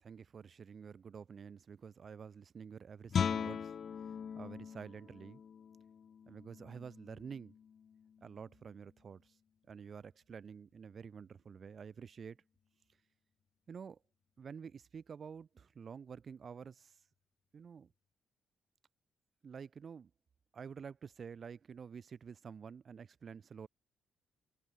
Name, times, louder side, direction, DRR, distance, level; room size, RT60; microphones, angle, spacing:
voice 1, 0.0-3.8 4.3-5.4 6.3-7.5 8.2-9.4 9.7-12.4 13.7-14.0 14.4-17.0 17.5-17.9 19.4-20.1 20.5-23.7, right 6 dB, 50° right, 1.2 m, -49 dB
Guitar, 3.1-8.7, left 7 dB, 55° left, 0.7 m, -40 dB
supercardioid pair, 70°, 0 cm